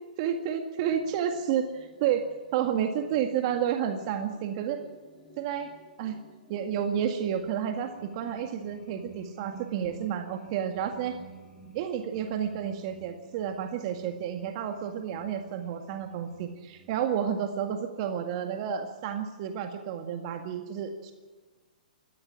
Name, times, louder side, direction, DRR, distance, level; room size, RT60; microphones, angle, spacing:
voice 1, 0.2-4.8 5.4-5.7 6.0-6.2 6.5-11.2 11.7-21.1, right 8 dB, 45° right, 6 dB, 1.9 m, -31 dB
sound 1, 0.9-17.0, right 4 dB, 15° left, 5.6 m, -53 dB
20.5 x 13.5 x 9.9 m, 1.3 s
hypercardioid pair, 130°, 5 cm